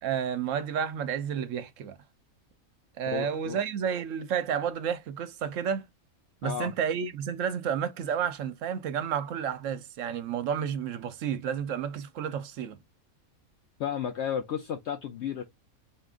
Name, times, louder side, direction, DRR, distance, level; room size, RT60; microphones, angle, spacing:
voice 1, 0.0-2.0 3.0-5.8 6.4-12.8, right 8 dB, 65° right, 1.0 m, -31 dB
voice 2, 3.1-3.6 6.4-6.7 13.8-15.4, left 8 dB, 65° left, 0.7 m, -33 dB
4.2 x 3.6 x 2.4 m
omnidirectional pair, 1.5 m